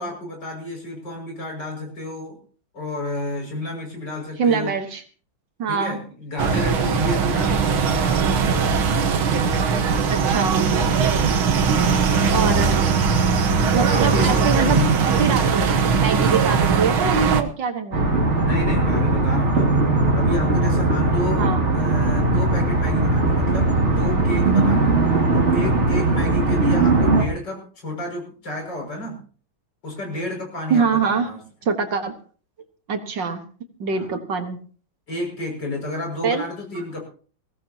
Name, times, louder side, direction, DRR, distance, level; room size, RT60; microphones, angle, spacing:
voice 1, 0.0-2.4 2.7-4.7 5.7-8.8 11.0-11.4 13.9-15.0 18.4-19.7 20.1-25.0 25.3-29.2 29.8-31.4 33.9-34.1 35.1-37.0, left 1 dB, 55° left, 1 dB, 6.7 m, -30 dB
voice 2, 4.4-5.0 5.6-6.0 10.1-10.7 12.3-12.8 13.7-18.1 21.4-21.6 30.7-31.3 31.7-32.1 32.9-33.4 33.8-34.6 36.2-36.4, right 5 dB, 65° right, 6 dB, 2.1 m, -24 dB
sound 1, 6.4-17.4, right 5 dB, 85° right, 2.2 m, -20 dB
sound 2, 17.9-27.2, right 2 dB, 35° right, 2.6 m, -19 dB
21.5 x 16.5 x 2.9 m, 0.42 s
omnidirectional pair, 2.2 m